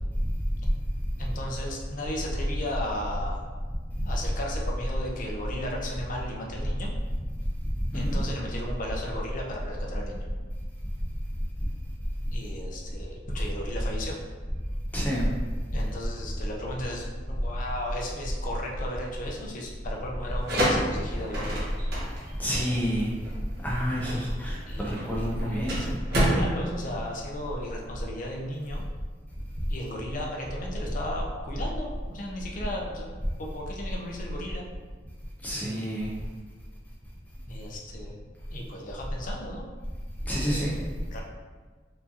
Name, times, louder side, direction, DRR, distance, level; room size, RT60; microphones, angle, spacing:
voice 1, 1.2-3.4 4.1-6.9 7.9-10.3 12.3-14.2 15.7-21.7 22.5-22.9 24.6-25.1 25.5-28.8 29.7-34.6 35.5-36.2 37.5-39.6 40.3-41.2, left 1 dB, 45° left, -1 dB, 0.6 m, -36 dB
voice 2, 7.9-8.2 14.9-15.3 22.4-23.1 23.6-25.8 35.4-36.1 40.3-40.7, equal, 10° left, -5 dB, 0.4 m, -28 dB
sound 1, 20.2-27.8, equal, 60° right, 1.1 m, -29 dB
4.6 x 2.7 x 2.7 m, 1.4 s
head